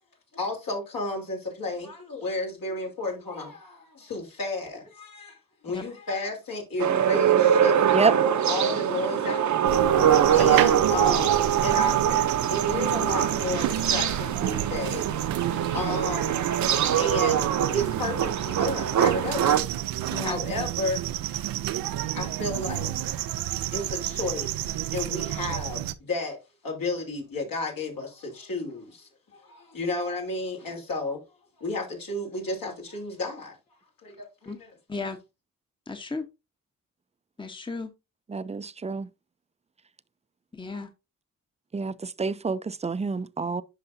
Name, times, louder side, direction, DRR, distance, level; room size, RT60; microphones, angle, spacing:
voice 1, 0.3-5.4 5.6-7.8 8.4-9.6 10.2-15.5 15.7-16.4 17.0-17.5 17.7-19.7 20.2-21.5 22.1-22.9 23.7-26.4 26.6-31.2 31.6-33.6 34.0-34.7, left 2 dB, 70° left, 3.4 m, -32 dB
sound 1, 6.8-19.6, right 9 dB, 55° right, 0.8 m, -23 dB
sound 2, 9.7-25.9, right 13 dB, 80° right, 0.6 m, -30 dB
voice 2, 35.9-36.3 37.4-37.9 40.5-40.9, left 3 dB, 15° left, 1.0 m, -34 dB
voice 3, 38.3-39.1 41.7-43.6, right 4 dB, 20° right, 0.5 m, -27 dB
9.8 x 5.5 x 2.7 m
supercardioid pair, 50°, 35 cm